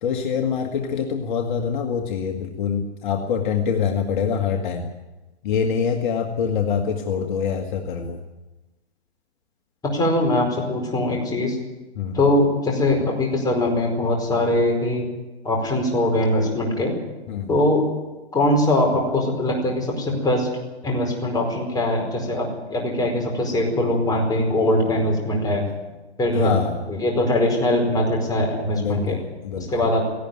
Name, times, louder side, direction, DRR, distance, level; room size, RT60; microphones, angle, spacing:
voice 1, 0.0-4.9 5.4-8.2 12.0-12.2 17.3-17.6 26.3-26.8 28.7-29.8, left 6 dB, 45° left, 3 dB, 1.9 m, -25 dB
voice 2, 9.8-11.6 12.1-15.0 15.4-16.9 17.5-17.8 18.3-20.5 20.8-25.6 26.2-26.5 26.9-29.2 29.7-30.1, left 1 dB, 10° left, 0 dB, 4.9 m, -21 dB
17.5 x 17.0 x 9.3 m, 1.1 s
hypercardioid pair, 140°, 33 cm